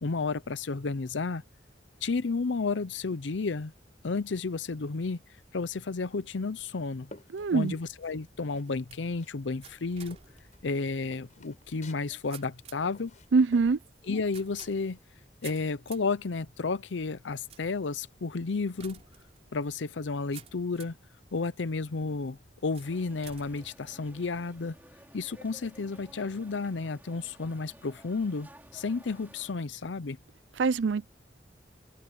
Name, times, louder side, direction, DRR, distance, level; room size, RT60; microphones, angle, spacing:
voice 1, 0.0-1.4 2.0-3.7 4.0-5.2 5.5-7.1 7.5-10.2 10.6-13.1 14.1-15.0 15.4-19.0 19.5-20.9 21.3-24.7 25.1-30.2, left 4 dB, 90° left, 0.7 m, -32 dB
sound 1, 6.5-8.2 8.5-9.4 9.7-15.7, left 2 dB, 40° left, 6.0 m, -54 dB
voice 2, 7.3-7.8 13.3-13.8 30.6-31.1, right 4 dB, 85° right, 0.5 m, -24 dB
sound 2, 7.7-21.1 21.7-22.1 22.7-24.6, right 7 dB, 35° right, 3.7 m, -54 dB
sound 3, 22.8-29.5, right 1 dB, 10° right, 3.2 m, -55 dB
open air
head